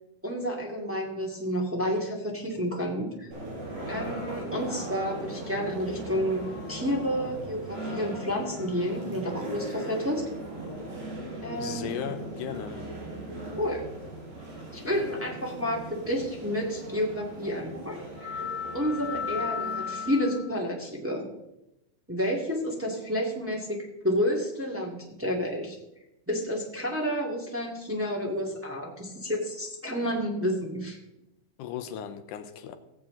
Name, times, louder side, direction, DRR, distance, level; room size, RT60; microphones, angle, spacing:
voice 1, 0.2-3.3 3.9-6.4 6.7-10.2 11.4-11.9 13.6-13.8 14.7-18.5 18.7-21.2 22.1-23.8 24.0-25.8 26.3-31.0, equal, 10° right, 0.7 m, -30 dB
sound 1, 3.3-20.5, left 1 dB, 75° right, 6.6 m, -37 dB
voice 2, 11.6-12.9 31.6-32.8, left 9 dB, 75° left, 2.1 m, -36 dB
18.0 x 7.7 x 3.8 m
omnidirectional pair, 4.3 m